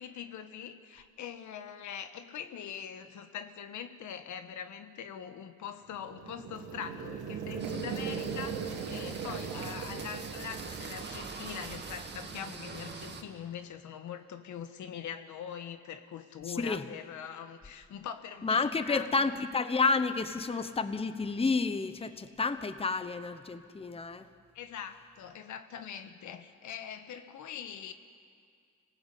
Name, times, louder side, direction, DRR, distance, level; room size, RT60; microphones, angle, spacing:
voice 1, 0.0-19.1 24.5-27.9, left 8 dB, 75° left, 9 dB, 1.5 m, -43 dB
sound 1, 5.9-12.0, right 6 dB, 90° right, 2.6 m, -39 dB
sound 2, 7.6-13.2, right 4 dB, 35° right, 2.4 m, -44 dB
voice 2, 16.5-16.8 18.4-24.2, left 4 dB, 20° left, 11 dB, 1.0 m, -30 dB
26.0 x 19.0 x 8.5 m, 2.2 s
cardioid pair, 90°, 30 cm